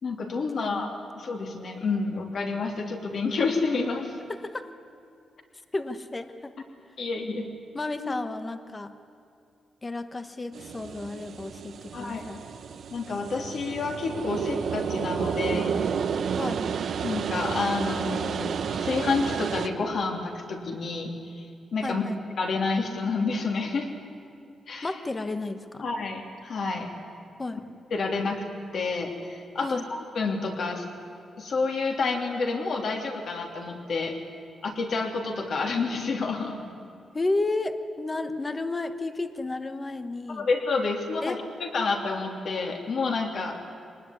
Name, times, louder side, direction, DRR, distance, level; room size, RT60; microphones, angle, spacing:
voice 1, 0.0-4.2 7.0-7.4 8.0-8.1 11.9-12.2 12.9-15.8 17.0-21.5 21.7-22.0 22.4-23.9 24.7-24.9 25.8-26.9 27.9-28.4 28.7-30.9 31.4-34.2 34.6-36.6 38.3-38.4 40.4-43.6, left 4 dB, 50° left, 2 dB, 3.1 m, -29 dB
voice 2, 0.5-0.9 4.3-4.7 5.7-6.5 7.7-8.9 9.8-12.4 16.3-16.7 21.8-22.2 24.8-25.8 27.4-27.6 29.6-29.8 37.1-40.5 41.2-41.4, left 2 dB, 20° left, 9 dB, 1.1 m, -32 dB
sound 1, 10.5-19.7, right 7 dB, 55° right, 0.9 m, -31 dB
24.5 x 19.5 x 9.8 m, 2.5 s
wide cardioid pair, 170°, 0 cm